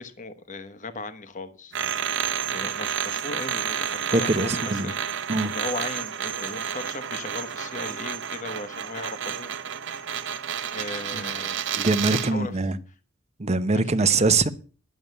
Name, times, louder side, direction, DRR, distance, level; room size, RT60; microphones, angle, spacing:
voice 1, 0.0-2.1 2.5-9.5 10.7-11.6 12.1-12.6 13.7-14.3, left 2 dB, 40° left, 1.1 m, -37 dB
sound 1, 1.7-12.4, right 8 dB, 60° right, 0.9 m, -30 dB
voice 2, 4.1-4.9 5.3-5.5 11.1-11.2 11.8-12.8 13.4-14.5, right 3 dB, 30° right, 0.9 m, -23 dB
11.0 x 7.1 x 8.1 m
head